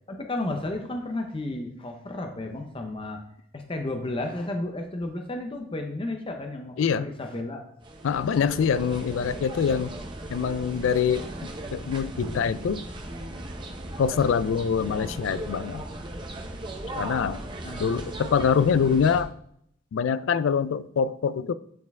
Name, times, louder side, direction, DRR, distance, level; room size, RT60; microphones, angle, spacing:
voice 1, 0.1-3.2 3.5-7.6 17.1-17.8, left 2 dB, 25° left, 0.6 m, -33 dB
voice 2, 6.8-7.1 8.0-9.9 10.3-12.9 14.0-15.8 17.0-17.4 17.8-19.3 19.9-21.5, left 6 dB, 70° left, 0.3 m, -24 dB
sound 1, 7.8-19.2, right 1 dB, 25° right, 0.8 m, -37 dB
8.1 x 4.4 x 3.5 m
head